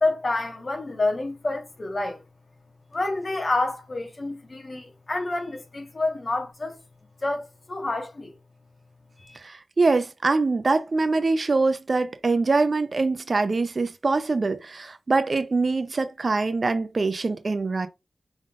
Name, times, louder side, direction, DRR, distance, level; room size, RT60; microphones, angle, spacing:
voice 1, 0.0-2.2 2.9-6.8 7.2-8.3 9.2-9.4, left 2 dB, 40° left, 1.2 m, -28 dB
voice 2, 9.4-17.9, right 3 dB, 45° right, 0.5 m, -24 dB
5.3 x 3.5 x 2.4 m
wide cardioid pair, 120°, 0 cm